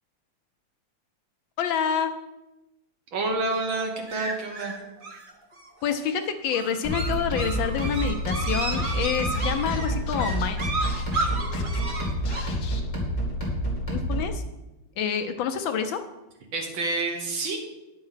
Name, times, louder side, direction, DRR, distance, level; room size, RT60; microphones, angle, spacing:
voice 1, 1.6-2.1 5.8-10.6 13.9-14.4 15.0-16.0, left 7 dB, 75° left, 8 dB, 1.3 m, -27 dB
voice 2, 3.1-4.8 16.5-17.6, right 3 dB, 65° right, 2 dB, 2.1 m, -28 dB
sound 1, 4.1-12.4, right 3 dB, 45° right, 0.7 m, -33 dB
sound 2, 6.8-14.4, equal, 15° left, 2.5 m, -28 dB
Scratching (performance technique), 8.3-8.4 8.6-11.9 12.3-12.8, left 6 dB, 55° left, 1.2 m, -42 dB
9.7 x 5.5 x 5.7 m, 1.0 s
omnidirectional pair, 2.4 m